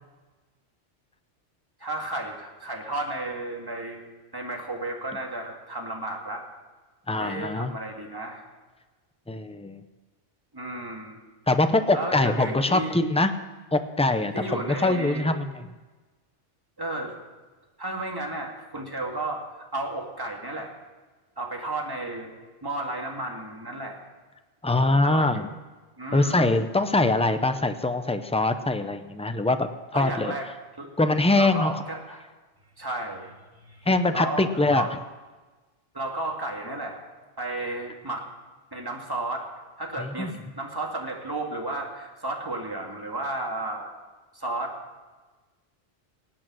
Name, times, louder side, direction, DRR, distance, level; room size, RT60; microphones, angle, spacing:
voice 1, 1.8-4.0 4.3-6.5 7.2-8.4 10.5-11.2 11.9-13.0 14.3-15.3 16.8-17.1 17.8-19.5 19.7-20.7 21.4-22.3 22.6-24.0 25.0-25.5 26.0-26.5 29.9-30.5 30.8-30.9 31.3-32.2 32.8-33.4 33.6-33.9 34.1-34.9 35.9-37.0 37.4-38.3 38.7-39.5 39.8-43.9 44.3-44.8, right 2 dB, 20° right, 0 dB, 2.1 m, -33 dB
voice 2, 7.1-7.7 9.3-9.8 11.5-13.3 13.7-15.7 24.6-25.5 26.1-30.3 31.0-31.7 33.9-34.9 40.0-40.3, left 2 dB, 10° left, 9 dB, 0.3 m, -23 dB
18.5 x 9.0 x 6.2 m, 1.3 s
omnidirectional pair, 1.2 m